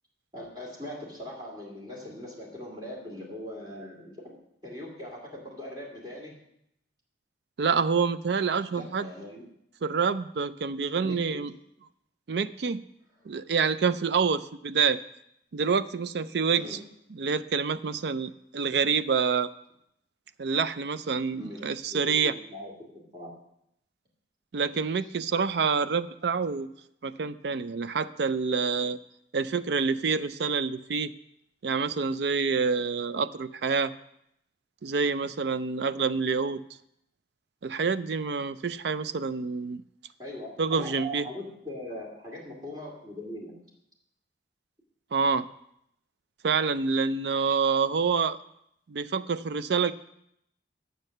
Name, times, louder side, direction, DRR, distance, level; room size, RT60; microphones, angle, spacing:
voice 1, 0.3-6.4 8.7-9.4 11.0-11.4 16.5-16.8 21.3-22.7 23.1-23.3 40.2-43.6, left 1 dB, 25° right, -3 dB, 2.4 m, -41 dB
voice 2, 7.6-9.1 9.8-11.5 12.3-12.8 13.3-15.0 15.5-16.8 17.1-19.5 20.4-22.3 24.5-26.7 27.0-29.0 29.3-31.1 31.6-33.9 34.8-36.6 37.6-39.8 40.6-41.3 45.1-45.5 46.4-48.4 48.9-49.9, right 5 dB, 65° right, 14 dB, 0.4 m, -27 dB
9.0 x 6.6 x 6.6 m, 0.77 s
head